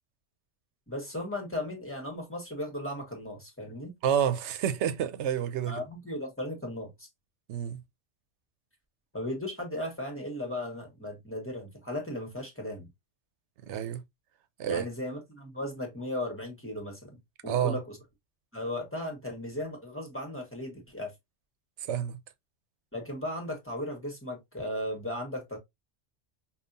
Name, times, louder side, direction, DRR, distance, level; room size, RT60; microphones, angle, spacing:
voice 1, 0.9-3.9 5.7-7.1 9.1-12.9 14.7-17.2 17.4-18.0 18.5-21.1 22.9-25.6, left 1 dB, 10° left, 1.3 m, -36 dB
voice 2, 4.0-5.8 7.5-7.8 13.7-14.0 14.6-14.8 17.5-17.8 21.8-22.2, right 9 dB, 80° right, 0.9 m, -29 dB
5.3 x 2.4 x 2.6 m
omnidirectional pair, 1.2 m